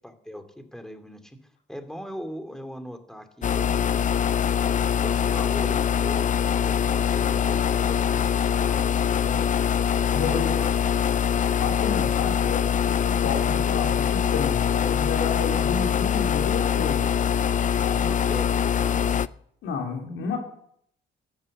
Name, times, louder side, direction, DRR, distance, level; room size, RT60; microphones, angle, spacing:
voice 1, 0.0-4.1 4.9-9.1 18.0-19.2, equal, 5° left, 6 dB, 2.5 m, -40 dB
sound 1, 3.4-19.3, left 8 dB, 40° left, 0.4 m, -23 dB
voice 2, 10.1-10.5 11.6-17.0 17.8-18.0 19.6-20.4, left 5 dB, 80° left, 1 dB, 3.3 m, -31 dB
13.5 x 12.0 x 6.6 m, 0.70 s
cardioid pair, 90°, 20 cm